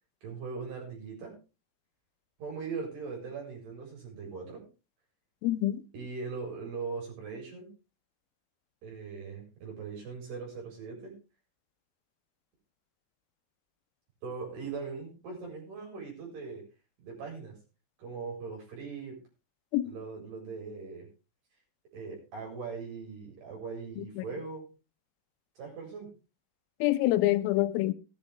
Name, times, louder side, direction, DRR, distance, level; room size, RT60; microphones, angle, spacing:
voice 1, 0.2-1.4 2.4-4.6 5.9-7.7 8.8-11.1 14.2-16.6 17.0-17.6 18.0-19.2 19.8-21.1 21.9-24.7 25.6-26.1, right 5 dB, 55° right, 6.3 m, -40 dB
voice 2, 5.4-5.8 19.7-19.8 24.0-24.3 26.8-27.9, left 16 dB, 90° left, 3.6 m, -26 dB
17.5 x 10.5 x 3.5 m
omnidirectional pair, 5.9 m